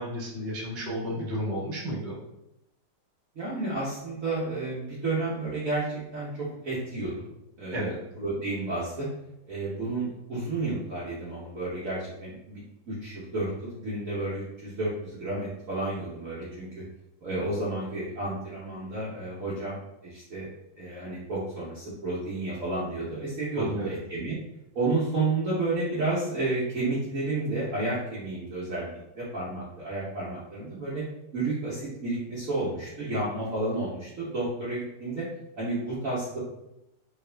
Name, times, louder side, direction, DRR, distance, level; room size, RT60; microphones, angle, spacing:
voice 1, 0.0-2.2 7.7-8.0 23.5-24.0, equal, 30° right, -5 dB, 1.1 m, -32 dB
voice 2, 0.6-1.0 3.3-7.3 7.6-9.1 9.5-16.8 17.2-20.5 20.8-24.4 24.7-31.0 31.3-35.3 35.6-36.4, right 2 dB, 55° right, -8 dB, 1.1 m, -31 dB
3.4 x 2.9 x 3.3 m, 0.87 s
omnidirectional pair, 2.0 m